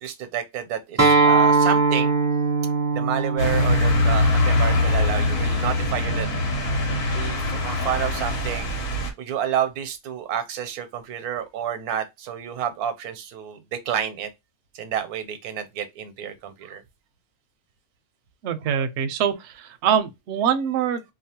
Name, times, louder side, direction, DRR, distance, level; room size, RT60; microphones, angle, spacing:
voice 1, 0.0-2.1 2.9-6.3 7.1-8.7 9.2-14.3 14.7-16.8, right 9 dB, 85° right, 1.1 m, -29 dB
Acoustic guitar, 1.0-6.2, right 4 dB, 15° right, 0.5 m, -22 dB
sound 1, 3.4-9.1, left 2 dB, 90° left, 1.5 m, -22 dB
voice 2, 18.4-21.0, right 8 dB, 65° right, 0.7 m, -24 dB
2.9 x 2.1 x 2.7 m
omnidirectional pair, 1.6 m